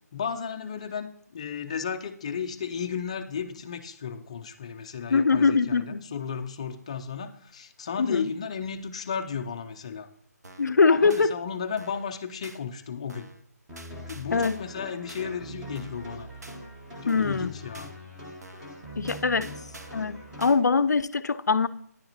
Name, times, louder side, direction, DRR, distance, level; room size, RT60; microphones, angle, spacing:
voice 1, 0.1-10.1 10.9-13.3 14.1-16.3 16.9-17.9 19.4-19.6, left 6 dB, 20° left, 0.3 m, -34 dB
voice 2, 5.1-6.1 8.0-8.3 10.6-11.3 14.3-14.6 17.1-17.5 19.0-19.5 19.9-21.7, left 4 dB, 90° left, 0.4 m, -23 dB
sound 1, 10.4-10.7 11.1-11.3 11.8-12.1 12.4-12.6 13.1-13.4 13.8-14.7 15.1-15.2 15.7-16.1 16.4-16.6 17.1-17.4 17.7-17.9 18.4-18.7 19.1-20.1 20.4-20.6, right 2 dB, 75° right, 0.8 m, -47 dB
sound 2, 13.7-20.5, equal, 5° right, 0.7 m, -42 dB
9.8 x 3.9 x 2.9 m
figure-of-eight pair, 165°, 9 cm